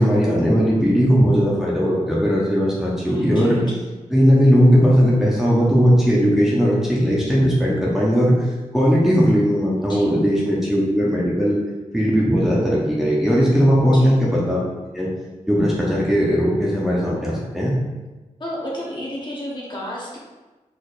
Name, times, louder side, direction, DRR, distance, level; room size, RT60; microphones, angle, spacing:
voice 1, 0.0-3.6 4.1-8.4 8.7-11.6 11.9-14.6 14.9-15.1 15.5-17.7, equal, 5° right, -6 dB, 1.0 m, -18 dB
voice 2, 3.0-3.9 9.8-10.1 13.9-14.1 18.4-20.2, equal, 35° left, -5 dB, 1.3 m, -31 dB
4.5 x 4.3 x 2.6 m, 1.2 s
wide cardioid pair, 85°, 13 cm